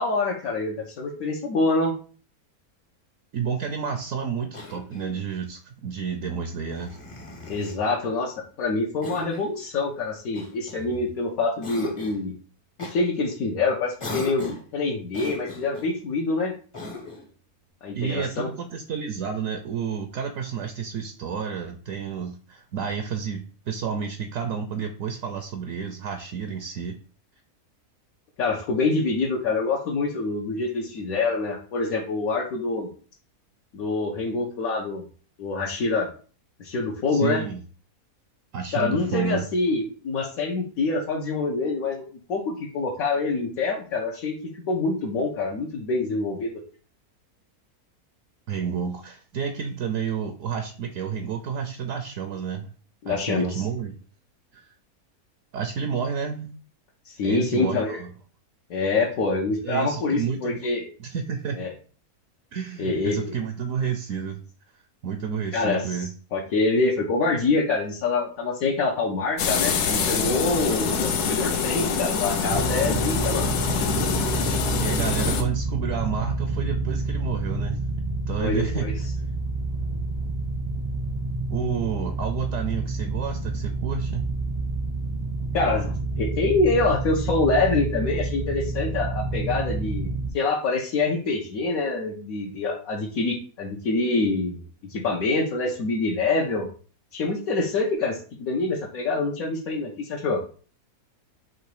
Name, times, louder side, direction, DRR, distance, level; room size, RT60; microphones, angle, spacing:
voice 1, 0.0-1.9 7.5-12.3 12.8-16.5 17.8-18.5 28.4-32.9 33.7-35.0 35.4-36.1 36.6-37.4 38.7-42.0 42.3-46.6 53.0-53.6 57.0-58.0 58.7-60.9 61.5-61.7 62.8-63.4 65.5-73.5 78.4-78.9 85.5-94.6 94.9-96.7 97.1-100.4, left 3 dB, 70° left, -2 dB, 1.2 m, -26 dB
voice 2, 3.3-7.0 17.9-27.0 37.1-37.6 38.5-39.4 48.5-52.7 53.1-53.9 54.5-54.7 55.5-56.5 57.2-58.1 59.6-60.6 61.0-61.6 62.5-64.4 65.0-66.1 74.8-77.9 78.3-78.8 81.5-84.2, right 7 dB, 70° right, 7 dB, 0.8 m, -30 dB
Cough, 4.5-5.3 6.6-7.8 9.0-9.5 10.3-11.2 11.6-12.3 12.8-13.0 14.0-14.7 15.1-15.9 16.7-17.3, left 2 dB, 30° left, 0.6 m, -38 dB
sound 1, 69.4-75.4, left 6 dB, 90° left, 1.2 m, -25 dB
sound 2, 72.5-90.3, right 3 dB, 35° right, 0.3 m, -28 dB
3.8 x 3.0 x 4.6 m, 0.40 s
omnidirectional pair, 1.6 m